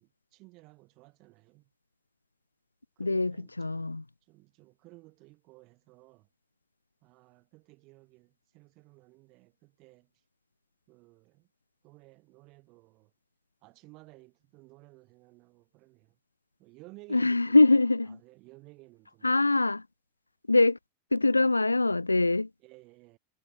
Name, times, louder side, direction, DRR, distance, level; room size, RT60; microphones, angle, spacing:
voice 1, 0.0-1.7 3.0-3.9 4.2-6.3 7.0-10.1 10.9-11.5 11.8-13.1 13.6-16.2 16.6-17.8 18.1-19.5 21.2-21.3 22.6-23.2, right 23 dB, 40° right, 7.2 m, -56 dB
voice 2, 3.0-4.0 17.1-18.2 19.2-19.8 20.5-20.8 21.1-22.5, left 2 dB, 80° left, 0.4 m, -23 dB
figure-of-eight pair, 90°, 0 cm